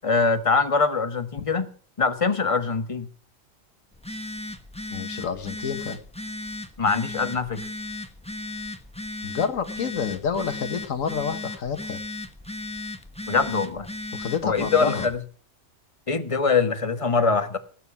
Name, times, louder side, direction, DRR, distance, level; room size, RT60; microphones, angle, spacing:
voice 1, 0.0-1.7 2.0-3.1 6.8-7.6 13.3-13.9 14.4-15.2 16.1-17.6, left 4 dB, 25° left, 9 dB, 1.3 m, -23 dB
Telephone, 3.9-15.2, left 2 dB, 5° left, 1.1 m, -36 dB
voice 2, 4.9-6.0 9.2-12.0 14.1-15.1, left 7 dB, 85° left, 9 dB, 1.6 m, -29 dB
18.0 x 7.7 x 7.2 m, 0.42 s
omnidirectional pair, 1.4 m